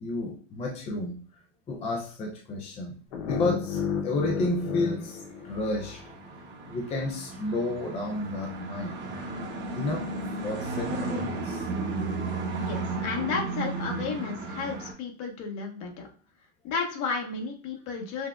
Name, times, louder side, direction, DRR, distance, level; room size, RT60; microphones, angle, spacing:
voice 1, 0.0-1.3 1.7-6.0 6.6-9.0 9.7-11.7, left 2 dB, 20° left, 0 dB, 0.4 m, -32 dB
sound 1, 3.1-6.2, left 6 dB, 85° left, 0.8 m, -32 dB
sound 2, 5.3-14.9, right 3 dB, 30° right, 0.9 m, -34 dB
voice 2, 12.6-16.1 16.6-18.3, left 5 dB, 50° left, 2 dB, 1.2 m, -33 dB
5.9 x 2.0 x 2.3 m, 0.43 s
supercardioid pair, 135°, 37 cm